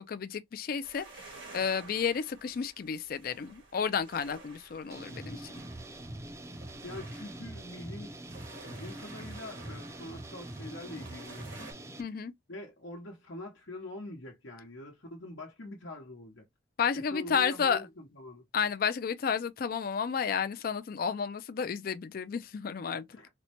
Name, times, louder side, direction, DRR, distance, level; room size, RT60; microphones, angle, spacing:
voice 1, 0.0-5.5 12.0-12.3 16.8-17.9 18.5-23.0, left 6 dB, 50° left, 0.4 m, -32 dB
sound 1, 0.8-11.7, right 3 dB, 90° right, 1.8 m, -52 dB
sound 2, 4.9-12.0, right 1 dB, 15° right, 0.4 m, -44 dB
voice 2, 6.8-8.1 8.6-11.7 12.5-16.4 16.9-18.5 23.1-23.3, left 2 dB, 80° left, 1.0 m, -44 dB
4.2 x 2.1 x 2.8 m
head